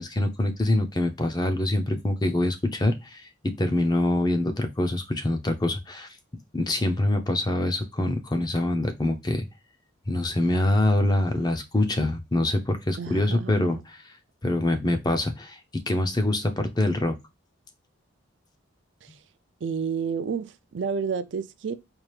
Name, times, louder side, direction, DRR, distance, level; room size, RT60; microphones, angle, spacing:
voice 1, 0.0-6.1 6.5-9.5 10.1-14.1 14.4-17.2, left 1 dB, 20° left, 0.5 m, -25 dB
voice 2, 13.0-13.8 19.0-19.2 19.6-21.7, right 6 dB, 60° right, 0.4 m, -30 dB
4.4 x 2.5 x 3.2 m
head